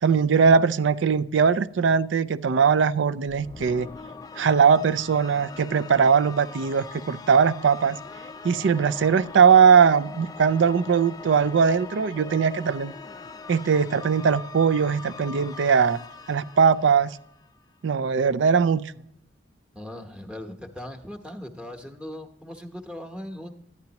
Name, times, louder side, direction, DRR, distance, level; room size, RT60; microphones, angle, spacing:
voice 1, 0.0-3.9 4.4-8.0 8.4-12.9 13.5-16.0 16.3-17.2 17.8-18.9, right 6 dB, 70° right, 16 dB, 0.4 m, -20 dB
sound 1, 3.3-17.6, left 4 dB, 20° left, 0.4 m, -42 dB
voice 2, 19.7-23.5, left 1 dB, 5° right, 3 dB, 0.9 m, -39 dB
11.5 x 9.4 x 2.9 m, 0.75 s
head